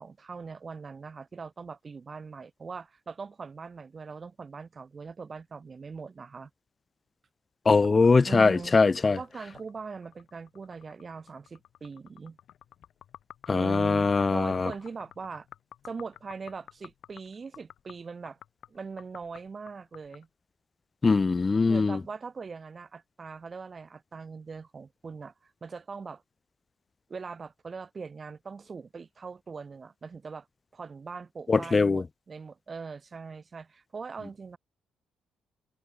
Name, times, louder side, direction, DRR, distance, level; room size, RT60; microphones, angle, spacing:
voice 1, 0.0-6.5 8.2-8.7 9.0-12.4 13.5-15.5 15.8-18.4 18.7-20.3 21.7-26.2 27.1-30.5 30.7-34.6, right 5 dB, 35° right, 2.9 m, -41 dB
voice 2, 7.7-9.2 13.5-14.7 21.0-22.0 31.5-32.0, left 4 dB, 30° left, 0.4 m, -22 dB
sound 1, 7.8-20.2, left 11 dB, 70° left, 7.2 m, -52 dB
cardioid pair, 90°, 0 cm